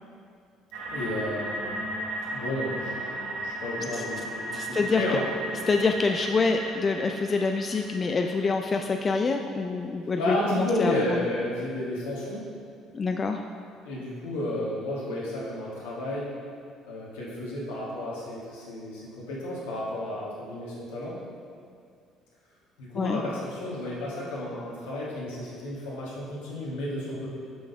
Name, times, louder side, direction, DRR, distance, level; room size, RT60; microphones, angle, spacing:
sound 1, 0.7-8.7, right 1 dB, 75° right, 1.2 m, -35 dB
voice 1, 0.9-1.8 2.3-5.2 10.1-12.4 13.8-16.3 16.9-21.2 22.8-27.3, left 1 dB, 85° left, -6 dB, 1.5 m, -32 dB
voice 2, 4.5-5.2 5.7-11.3 12.9-13.4 22.9-23.2, left 4 dB, 35° left, 4 dB, 0.3 m, -26 dB
6.2 x 3.8 x 4.7 m, 2.3 s
hypercardioid pair, 60°, 0 cm